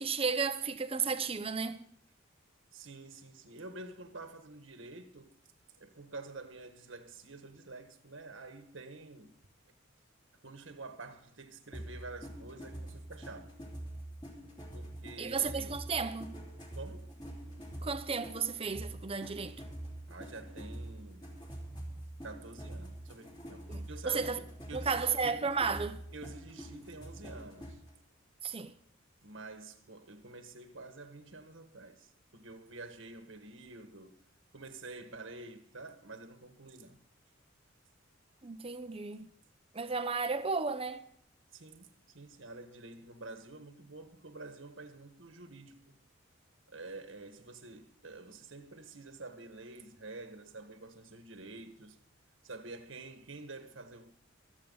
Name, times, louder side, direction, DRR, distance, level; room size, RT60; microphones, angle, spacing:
voice 1, 0.0-1.8 15.2-16.4 17.8-19.6 23.7-24.4 24.7-26.0 28.4-28.7 38.4-39.3 39.7-41.1, right 5 dB, 30° right, 0.9 m, -33 dB
voice 2, 2.7-5.3 5.8-9.3 10.4-13.5 14.7-15.8 16.7-17.2 20.1-21.4 22.2-25.5 26.1-27.8 29.2-34.2 34.5-37.0 41.5-46.0 46.7-52.0 52.4-54.1, right 3 dB, 75° right, 1.6 m, -48 dB
sound 1, 11.7-27.9, right 1 dB, 25° left, 3.1 m, -45 dB
25.5 x 8.5 x 4.0 m
head